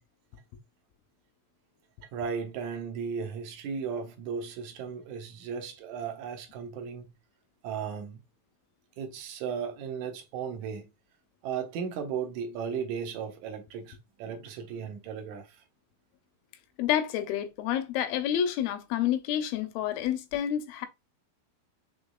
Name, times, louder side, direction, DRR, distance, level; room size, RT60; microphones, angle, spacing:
voice 1, 2.0-7.1 7.6-8.2 9.0-10.9 11.4-15.6, right 6 dB, 70° right, 2.0 m, -36 dB
voice 2, 16.8-20.9, left 10 dB, 90° left, 2.6 m, -29 dB
6.2 x 3.5 x 2.3 m
omnidirectional pair, 4.2 m